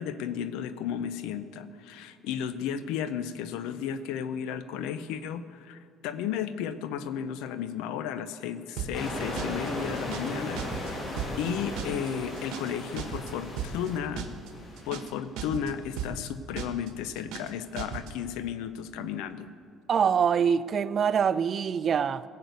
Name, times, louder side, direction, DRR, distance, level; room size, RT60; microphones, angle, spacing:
voice 1, 0.0-11.0 11.4-14.3 14.8-19.5, left 8 dB, 90° left, 0.6 m, -34 dB
sound 1, 8.8-9.1 9.4-9.7 10.0-10.3 10.6-10.9 11.2-11.5 11.8-12.1 12.4-12.7 13.0-13.3 13.6-13.9 14.2-14.5 14.8-15.1 15.4-15.7 16.0-16.3 16.6-16.9 17.2-17.5 17.8-18.1, right 8 dB, 80° right, 1.3 m, -36 dB
sound 2, 8.9-15.1, left 1 dB, 35° left, 2.8 m, -36 dB
voice 2, 19.9-22.2, right 7 dB, 40° right, 0.4 m, -24 dB
17.5 x 6.6 x 8.1 m
cardioid pair, 130°, 0 cm